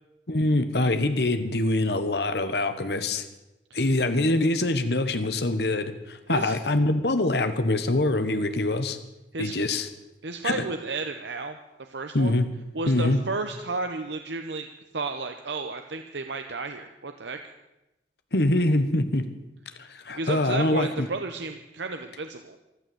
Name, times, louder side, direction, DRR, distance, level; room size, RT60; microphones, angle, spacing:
voice 1, 0.3-3.2 3.7-9.0 9.4-9.9 10.4-10.6 12.1-12.4 12.9-13.2 18.3-19.3 19.8-21.1, left 2 dB, 65° left, 9 dB, 1.3 m, -24 dB
voice 2, 9.3-9.6 10.2-12.4 12.7-14.7 14.9-17.5 20.1-22.6, right 3 dB, 75° right, 6 dB, 0.9 m, -33 dB
14.5 x 12.0 x 7.9 m, 0.96 s
head